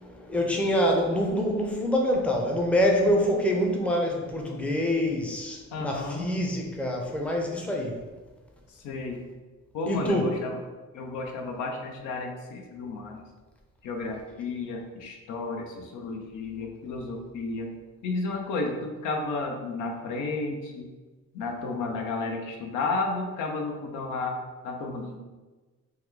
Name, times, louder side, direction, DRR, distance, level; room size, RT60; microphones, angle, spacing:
voice 1, 0.0-8.0 9.9-10.3, equal, 5° left, 0 dB, 0.5 m, -26 dB
voice 2, 5.7-6.3 8.8-9.2 9.7-10.6 10.9-13.3 13.8-17.7 18.0-20.9 21.3-24.4 24.6-25.2, left 3 dB, 85° left, 2 dB, 0.6 m, -32 dB
3.1 x 2.2 x 3.6 m, 1.3 s
cardioid pair, 90°, 30 cm